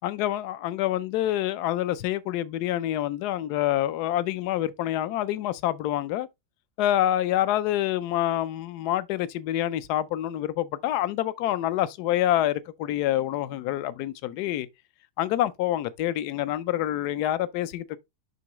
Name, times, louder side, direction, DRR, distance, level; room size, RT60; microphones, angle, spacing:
voice 1, 0.0-6.3 6.8-14.7 15.2-18.0, left 13 dB, 75° left, 1.1 m, -27 dB
11.0 x 3.7 x 3.0 m
omnidirectional pair, 1.7 m